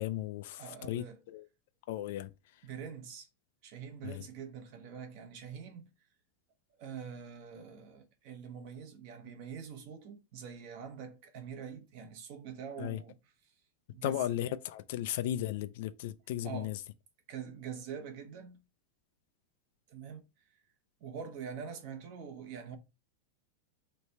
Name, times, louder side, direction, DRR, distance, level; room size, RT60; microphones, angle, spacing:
voice 1, 0.0-1.5 1.9-2.6 4.0-4.2 12.8-13.0 14.0-16.8, left 12 dB, 55° left, 0.3 m, -36 dB
voice 2, 0.6-1.2 2.6-3.3 3.6-5.9 6.8-13.2 13.9-14.4 16.4-16.7 17.3-18.6 19.9-20.2 21.0-22.8, right 7 dB, 40° right, 0.9 m, -44 dB
3.3 x 3.2 x 4.1 m
supercardioid pair, 170°, 0 cm